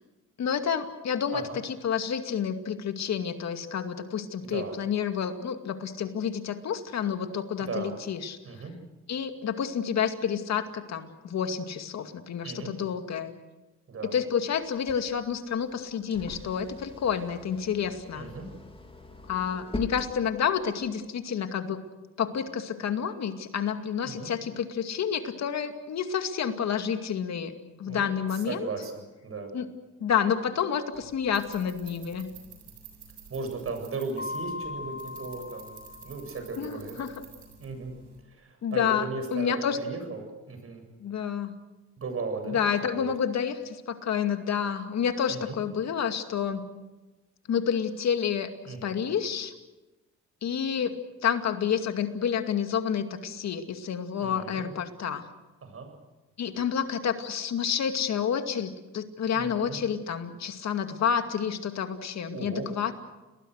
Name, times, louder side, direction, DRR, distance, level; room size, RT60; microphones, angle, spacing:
voice 1, 0.4-8.4 9.1-13.3 14.1-18.3 19.3-21.8 22.2-27.5 27.8-28.7 29.5-29.7 30.0-32.3 36.6-37.2 38.6-39.8 41.0-41.5 42.5-46.7 47.5-49.5 50.4-51.0 51.2-55.3 56.4-63.0, left 7 dB, 60° left, 7 dB, 2.4 m, -29 dB
voice 2, 4.4-4.8 7.6-7.9 8.4-8.7 12.4-12.7 13.9-14.2 18.2-18.5 24.0-24.3 27.9-29.5 33.3-37.0 37.6-37.9 38.3-40.8 42.0-42.6 42.9-43.1 45.3-45.6 48.6-48.9 54.2-54.7 55.6-55.9 59.3-59.8 62.3-62.7, right 4 dB, 50° right, 5 dB, 7.7 m, -37 dB
sound 1, 14.6-20.9, left 2 dB, 20° left, 3.3 m, -43 dB
sound 2, 30.9-38.2, right 6 dB, 80° right, 7.5 m, -51 dB
Mallet percussion, 34.2-36.8, left 3 dB, 35° left, 1.7 m, -39 dB
30.0 x 20.0 x 6.6 m, 1.1 s
cardioid pair, 90°, 30 cm